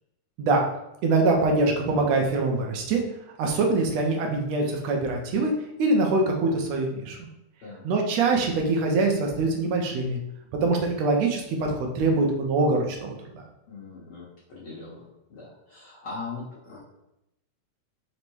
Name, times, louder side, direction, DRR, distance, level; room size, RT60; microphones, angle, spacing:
voice 1, 1.0-3.0 3.4-5.5 5.8-7.2 7.8-10.2 10.6-13.4, right 3 dB, 75° right, 1 dB, 1.8 m, -24 dB
voice 2, 13.7-16.8, left 4 dB, 60° left, -8 dB, 1.6 m, -40 dB
5.3 x 2.1 x 4.5 m, 0.86 s
omnidirectional pair, 3.4 m